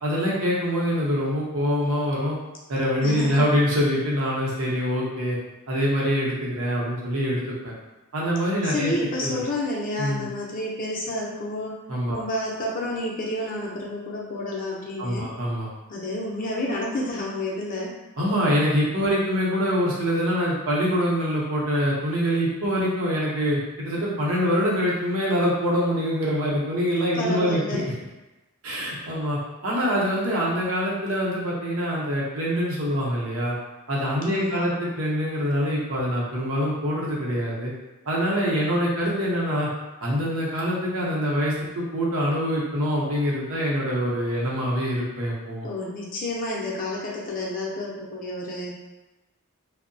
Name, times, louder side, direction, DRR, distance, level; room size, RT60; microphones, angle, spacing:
voice 1, 0.0-2.4 2.7-5.4 5.7-7.7 8.1-8.9 9.2-9.4 10.0-10.3 11.9-12.2 15.0-15.7 18.2-27.8 28.6-33.6 33.9-37.7 38.1-39.7 40.0-45.7, equal, 65° right, -4 dB, 0.7 m, -24 dB
voice 2, 3.0-3.4 8.6-11.8 12.1-15.3 15.9-17.9 27.1-27.8 34.3-34.8 45.6-48.7, left 1 dB, 40° left, -3 dB, 0.5 m, -30 dB
2.7 x 2.0 x 2.6 m, 1.1 s
head